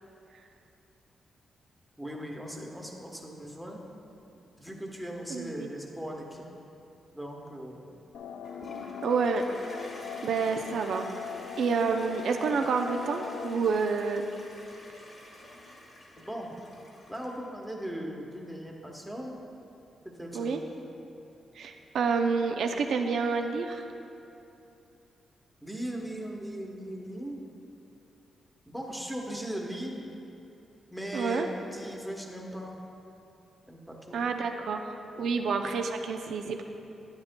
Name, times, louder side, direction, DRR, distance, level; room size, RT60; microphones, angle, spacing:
voice 1, 2.0-3.8 4.6-6.4 7.1-7.8 16.3-16.5 17.1-19.3 20.0-20.6 25.6-27.4 28.7-30.0 30.9-31.5 31.7-32.8 33.7-34.3 35.1-35.3, equal, ahead, -1 dB, 1.0 m, -38 dB
voice 2, 5.3-5.8 9.0-9.5 10.2-11.2 11.6-14.3 20.3-20.6 21.5-23.9 31.1-31.5 34.1-34.9 35.2-36.6, right 5 dB, 75° right, 4 dB, 0.4 m, -29 dB
sound 1, 8.1-13.7, left 8 dB, 85° left, 0.3 m, -41 dB
Toilet flush, 8.4-17.6, left 1 dB, 45° left, 1.8 m, -49 dB
10.0 x 9.3 x 2.2 m, 2.8 s
cardioid pair, 110°, 0 cm